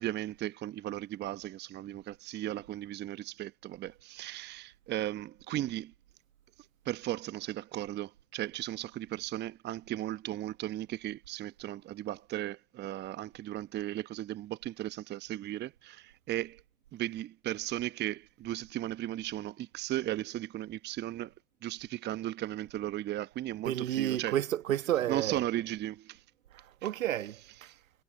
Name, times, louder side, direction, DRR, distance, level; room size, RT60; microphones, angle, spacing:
voice 1, 0.0-5.9 6.8-16.6 16.9-21.3 21.6-24.4 25.1-26.2 27.7-27.8, right 14 dB, 25° right, 1.0 m, -36 dB
voice 2, 23.6-25.5 26.5-27.7, right 12 dB, 65° right, 1.5 m, -31 dB
figure-of-eight pair, 95°, 43 cm